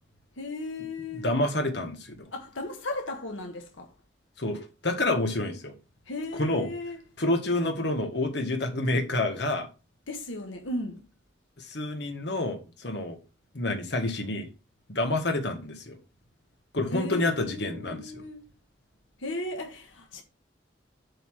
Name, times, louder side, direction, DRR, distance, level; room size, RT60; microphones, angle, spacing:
voice 1, 0.4-1.4 2.3-3.9 6.1-7.0 10.1-11.1 16.9-18.5 19.2-20.2, left 2 dB, 90° left, 1.4 m, -36 dB
voice 2, 1.1-2.3 4.4-5.7 6.3-6.7 7.2-9.7 11.6-13.2 13.5-14.5 14.9-16.0 16.7-18.1, left 2 dB, 60° left, 1.6 m, -28 dB
8.0 x 4.2 x 6.2 m
head